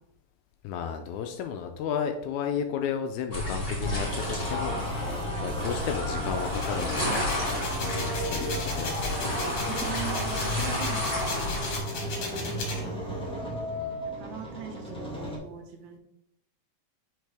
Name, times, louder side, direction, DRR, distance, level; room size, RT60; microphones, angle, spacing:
voice 1, 0.6-7.2 7.9-8.9 12.3-12.8 13.7-14.1, left 7 dB, 80° left, 6 dB, 1.8 m, -33 dB
sound 1, 3.3-11.8, left 1 dB, 20° left, 1.9 m, -31 dB
sound 2, 3.8-15.4, equal, 5° left, 0.7 m, -35 dB
voice 2, 5.0-5.9 7.6-9.0 9.4-11.6 12.4-13.0 14.2-16.0, right 7 dB, 75° right, 4 dB, 2.0 m, -42 dB
sound 3, 6.4-12.8, left 3 dB, 55° left, 1.8 m, -37 dB
6.3 x 4.9 x 3.4 m, 0.81 s
omnidirectional pair, 3.7 m